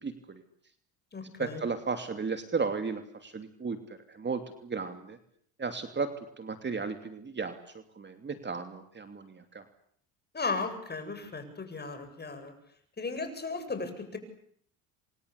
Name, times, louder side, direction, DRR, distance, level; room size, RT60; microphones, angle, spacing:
voice 1, 0.0-0.4 1.4-5.2 5.6-6.1 6.4-7.6 7.9-9.6, right 4 dB, 25° right, 7 dB, 2.9 m, -34 dB
voice 2, 1.1-1.6 10.3-12.5 13.0-14.2, left 4 dB, 25° left, 8 dB, 7.9 m, -35 dB
28.5 x 25.0 x 8.4 m, 0.65 s
supercardioid pair, 95°, 40 cm